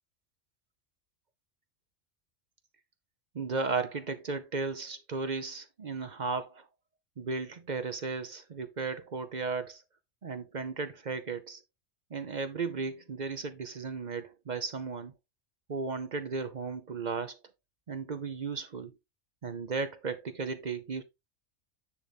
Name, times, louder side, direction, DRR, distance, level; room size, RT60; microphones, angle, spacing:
voice 1, 3.3-6.6 7.2-9.8 10.2-11.6 12.1-15.1 15.7-17.4 17.9-18.9 19.4-21.0, right 4 dB, 45° right, 0.7 m, -35 dB
9.9 x 3.4 x 4.0 m
omnidirectional pair, 1.3 m